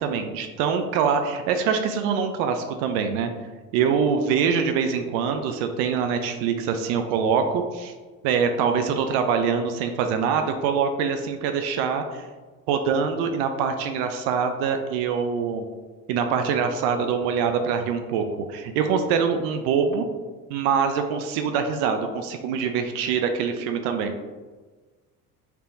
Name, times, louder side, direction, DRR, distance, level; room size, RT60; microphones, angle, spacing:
voice 1, 0.0-3.3 3.7-7.9 8.2-12.3 12.7-15.6 16.1-18.2 18.5-20.1 20.5-24.1, right 6 dB, 65° right, 6 dB, 0.5 m, -24 dB
4.3 x 3.4 x 2.5 m, 1.3 s
hypercardioid pair, 65°, 43 cm